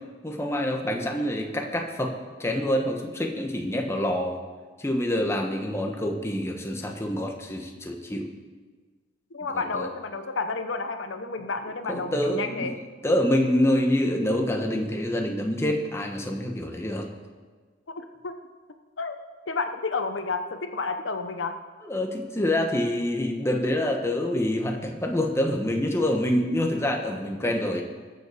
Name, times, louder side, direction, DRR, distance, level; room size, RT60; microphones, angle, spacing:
voice 1, 0.2-2.1 2.4-4.4 4.8-8.3 9.5-9.9 11.9-12.7 13.0-17.1 21.8-27.8, left 1 dB, 15° left, 2 dB, 1.1 m, -26 dB
voice 2, 9.3-12.7 18.0-18.3 19.0-19.2 19.5-21.6, left 4 dB, 85° left, 8 dB, 0.8 m, -31 dB
20.0 x 6.9 x 4.9 m, 1.4 s
head